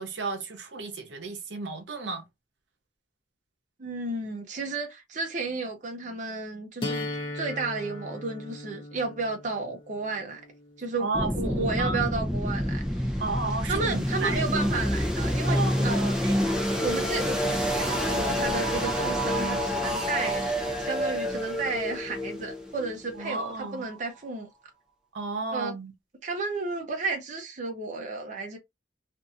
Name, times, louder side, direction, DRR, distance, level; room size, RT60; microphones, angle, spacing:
voice 1, 0.0-2.2 11.0-12.0 13.2-14.8 15.5-15.9 16.2-16.4 23.2-23.8 25.1-25.9, right 3 dB, 85° right, 0.8 m, -33 dB
voice 2, 3.8-7.1 7.3-10.4 10.8-13.2 13.7-16.2 16.8-20.5 20.8-24.5 25.5-25.7 26.2-28.6, right 3 dB, 45° right, 0.7 m, -32 dB
sound 1, 6.8-12.8, left 1 dB, 30° left, 0.8 m, -39 dB
sound 2, 11.1-24.0, equal, 5° right, 0.7 m, -28 dB
2.7 x 2.6 x 2.4 m
head